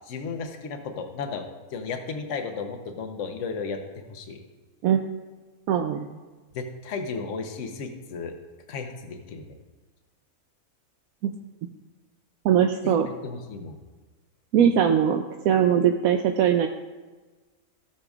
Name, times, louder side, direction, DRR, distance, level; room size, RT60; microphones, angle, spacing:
voice 1, 0.1-1.5 1.7-4.4 6.5-8.3 8.7-9.5 12.8-13.7, left 4 dB, 55° left, 5 dB, 1.2 m, -34 dB
voice 2, 5.7-6.1 11.2-11.3 12.4-13.1 14.5-16.7, right 9 dB, 75° right, 5 dB, 1.0 m, -21 dB
17.0 x 6.7 x 2.4 m, 1.3 s
omnidirectional pair, 1.6 m